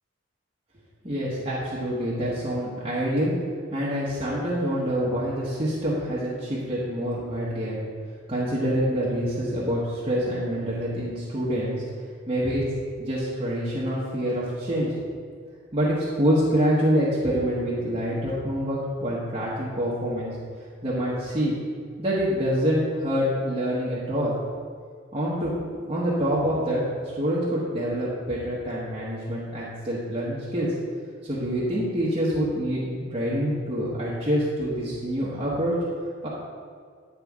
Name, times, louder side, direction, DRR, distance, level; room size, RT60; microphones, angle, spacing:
voice 1, 1.0-3.3 3.7-7.8 8.3-11.8 12.3-12.6 13.0-14.9 15.7-20.4 20.8-21.5 22.0-24.3 25.1-25.5 25.9-26.8 27.2-30.7 31.2-35.7 36.2-36.3, equal, 30° right, -8 dB, 1.2 m, -26 dB
9.6 x 4.9 x 3.6 m, 2.1 s
head